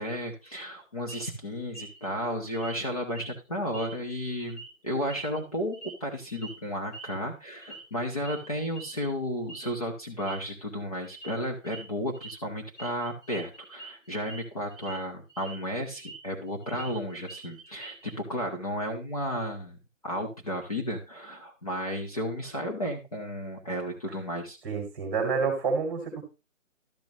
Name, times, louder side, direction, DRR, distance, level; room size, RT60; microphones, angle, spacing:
voice 1, 0.0-19.8 20.0-24.6, equal, 30° left, 1 dB, 1.0 m, -33 dB
sound 1, 1.1-1.3 1.7-2.1 2.5-2.8 3.1-3.3 3.7-4.2 4.5-4.7 5.1-6.0 6.3-6.5 6.9-7.1 7.6-7.9 8.2-8.5 8.7-9.1 9.5-9.7 10.1-10.4 11.0-11.3 11.6-11.8 12.1-12.3 12.8-14.4 14.7-15.0 15.3-16.2 16.5-18.1, right 3 dB, 70° left, 4.7 m, -45 dB
voice 2, 24.6-26.2, right 5 dB, 15° right, 3 dB, 1.7 m, -28 dB
12.0 x 6.9 x 2.9 m, 0.28 s
hypercardioid pair, 175°, 40 cm